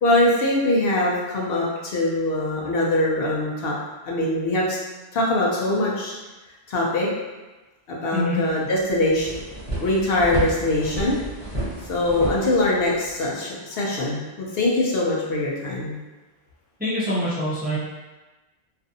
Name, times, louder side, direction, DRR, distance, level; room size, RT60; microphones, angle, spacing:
voice 1, 0.0-3.8 4.0-4.8 5.1-6.1 6.7-7.1 7.9-9.4 9.8-11.2 11.9-16.0, left 1 dB, 70° left, -4 dB, 0.8 m, -22 dB
sound 1, 8.5-8.6 8.9-13.1, right 2 dB, 35° right, 0.8 m, -31 dB
voice 2, 16.8-17.8, equal, 10° right, -9 dB, 0.4 m, -24 dB
2.5 x 2.4 x 2.5 m, 1.1 s
omnidirectional pair, 1.1 m